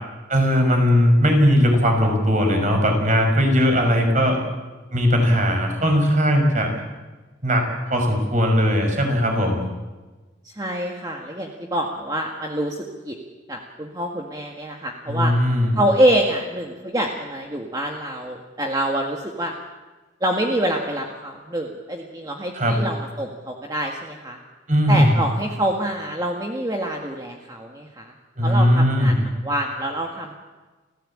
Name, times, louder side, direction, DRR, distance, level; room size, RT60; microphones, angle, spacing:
voice 1, 0.3-4.4 4.9-6.7 7.4-9.6 15.1-15.7 22.5-22.7 24.7-25.2 28.4-29.2, equal, 45° right, 4 dB, 6.0 m, -18 dB
voice 2, 10.5-13.2 13.5-15.3 15.7-19.5 20.2-24.4 24.9-28.1 28.4-30.4, right 1 dB, 20° right, 0 dB, 1.9 m, -26 dB
29.5 x 16.0 x 8.8 m, 1.3 s
head